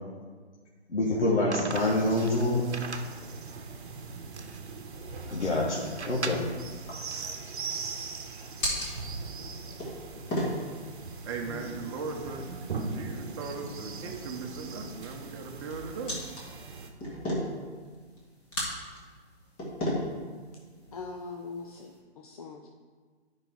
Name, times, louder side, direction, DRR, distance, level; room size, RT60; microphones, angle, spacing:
voice 1, 0.9-2.7 5.2-6.4 11.5-11.7 12.9-13.1, left 2 dB, 85° left, -5 dB, 1.7 m, -27 dB
sound 1, 1.5-7.3, right 4 dB, 80° right, 0.9 m, -41 dB
sound 2, 1.7-16.9, right 4 dB, 50° right, 1.1 m, -41 dB
sound 3, 7.6-22.0, equal, 15° left, 1.7 m, -38 dB
voice 2, 11.3-12.4 12.9-16.2, right 4 dB, 25° right, 2 dB, 1.0 m, -38 dB
voice 3, 20.9-22.7, left 4 dB, 35° left, 2 dB, 0.6 m, -41 dB
10.0 x 5.3 x 4.7 m, 1.5 s
figure-of-eight pair, 135°, 33 cm